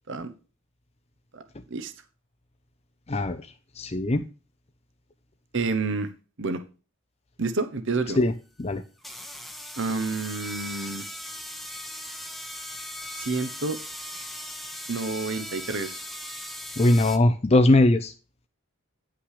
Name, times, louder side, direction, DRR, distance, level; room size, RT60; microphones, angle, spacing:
voice 1, 3.1-3.4 3.8-4.2 8.2-8.3 8.6-8.8 16.8-18.1, left 2 dB, 30° left, 6 dB, 0.5 m, -20 dB
voice 2, 5.5-6.1 6.4-6.6 7.4-8.2 9.8-11.0 13.2-13.8 14.9-16.0, right 3 dB, 55° right, 9 dB, 1.0 m, -29 dB
sound 1, 8.2-8.3 9.0-17.2, left 1 dB, ahead, 0.9 m, -38 dB
9.9 x 6.0 x 4.8 m, 0.34 s
head